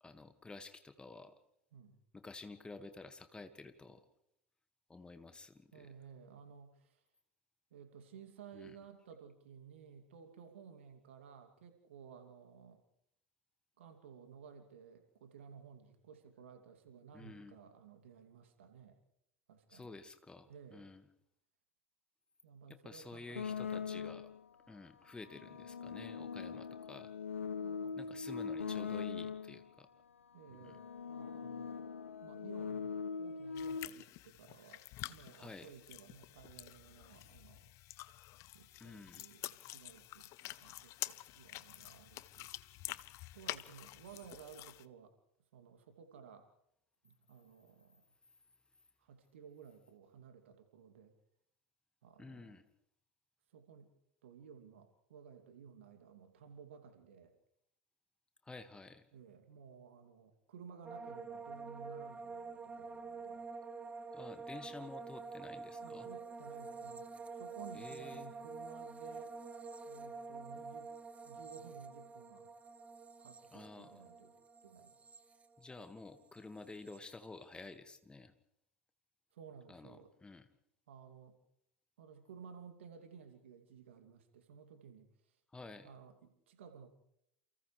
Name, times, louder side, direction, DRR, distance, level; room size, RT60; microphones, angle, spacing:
voice 1, 0.0-1.3 2.1-4.1 4.9-5.9 8.5-8.8 17.1-17.6 19.7-21.0 22.7-24.3 24.7-27.1 28.0-29.9 30.5-30.8 35.3-35.7 38.8-39.2 52.2-52.6 58.4-59.0 64.1-66.1 67.7-68.3 73.5-74.0 75.6-78.3 79.7-80.5 85.5-85.9, left 3 dB, 15° left, 9 dB, 1.9 m, -51 dB
voice 2, 5.7-7.0 7.7-12.8 13.8-19.0 19.5-19.9 20.5-20.9 22.4-24.0 27.6-28.7 30.3-31.8 32.2-37.7 38.5-40.3 40.6-42.5 43.3-45.1 45.5-46.5 47.0-48.0 49.0-51.1 52.0-52.6 53.5-53.9 54.2-57.4 59.1-63.5 65.8-69.3 69.9-70.9 71.2-72.5 73.2-74.4 74.6-74.9 79.3-80.1 80.9-81.4 82.0-85.1 85.8-86.9, right 7 dB, 65° right, 5 dB, 2.8 m, -56 dB
sound 1, 23.4-24.4 25.2-29.7 30.4-33.9, left 6 dB, 80° left, 0.7 m, -41 dB
sound 2, 33.5-44.8, left 18 dB, 45° left, 0.8 m, -48 dB
sound 3, 60.8-76.1 76.3-77.0, right 4 dB, 20° right, 1.6 m, -48 dB
29.0 x 29.0 x 3.3 m, 0.76 s
figure-of-eight pair, 80°, 7 cm